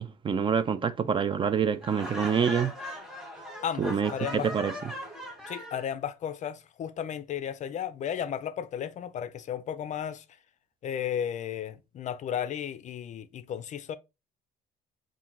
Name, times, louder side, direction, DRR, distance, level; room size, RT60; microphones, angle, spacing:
voice 1, 0.0-2.7 3.8-4.7, right 7 dB, 30° right, 0.3 m, -27 dB
Laughter, 1.8-5.9, equal, 5° right, 1.0 m, -39 dB
voice 2, 3.6-4.5 5.5-10.2 10.8-14.0, left 9 dB, 45° left, 0.4 m, -34 dB
5.5 x 2.6 x 2.5 m
cardioid pair, 110°, 17 cm